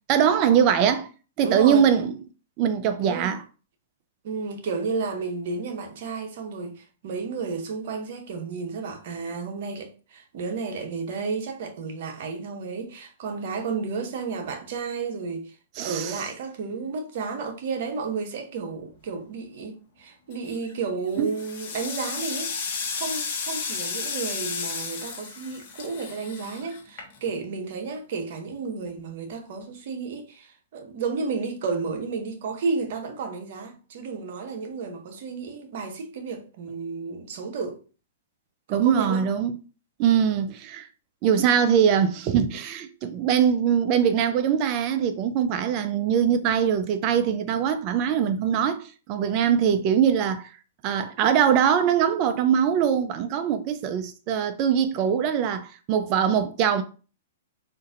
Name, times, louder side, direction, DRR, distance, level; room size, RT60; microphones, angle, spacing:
voice 1, 0.1-1.1 1.4-2.1 2.6-3.4 15.8-16.2 21.2-21.3 38.7-39.6 40.0-40.9 41.2-50.5 50.8-56.8, right 8 dB, 40° right, 0.4 m, -22 dB
voice 2, 1.4-1.8 3.0-3.4 4.2-22.7 23.0-37.8 38.7-39.3, right 4 dB, 60° right, 0.8 m, -32 dB
sound 1, 20.3-20.7 21.2-27.5, left 5 dB, 50° left, 1.0 m, -33 dB
3.8 x 2.6 x 2.6 m
hypercardioid pair, 125°, 0 cm